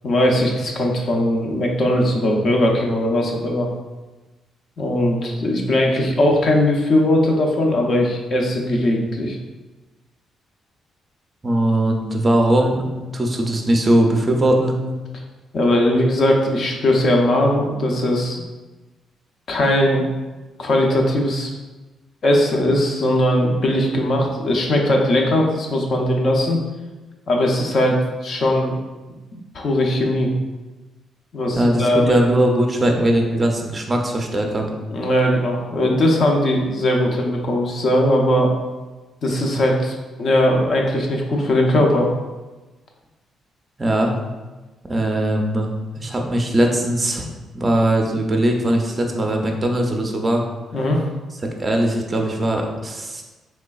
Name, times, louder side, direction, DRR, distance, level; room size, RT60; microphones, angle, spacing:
voice 1, 0.0-3.7 4.8-9.4 15.5-18.4 19.5-20.0 20.6-21.5 22.2-26.6 27.3-28.0 28.2-28.8 29.3-30.3 31.3-32.2 34.9-38.5 39.2-42.1 50.7-51.0, left 1 dB, 50° left, 0 dB, 0.6 m, -19 dB
voice 2, 11.4-12.8 13.1-14.8 31.5-34.8 43.8-44.1 44.9-45.7 46.0-47.3 47.5-50.4 51.6-53.2, right 1 dB, 25° right, 2 dB, 0.5 m, -19 dB
3.7 x 3.2 x 2.3 m, 1.2 s
cardioid pair, 130°, 0 cm